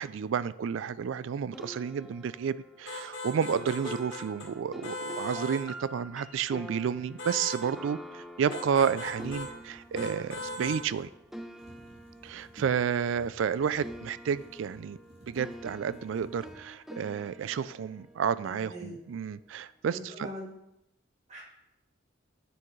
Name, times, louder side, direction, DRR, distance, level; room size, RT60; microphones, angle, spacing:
voice 1, 0.0-11.1 12.2-15.0 15.3-20.3, right 7 dB, 75° right, 17 dB, 0.3 m, -31 dB
sound 1, 1.5-13.5 13.8-19.0, equal, ahead, 0.4 m, -47 dB
sound 2, 2.9-4.5 4.8-5.7 7.2-7.6 8.5-9.5 10.0-10.8, left 1 dB, 70° left, 1.9 m, -38 dB
sound 3, 8.7-16.9 17.6-17.7 18.1-18.8 19.1-19.7, right 1 dB, 55° right, 2.9 m, -54 dB
voice 2, 18.6-19.0 19.9-20.5 21.3-21.4, equal, 35° right, -5 dB, 2.3 m, -41 dB
9.6 x 7.0 x 3.2 m, 0.86 s
head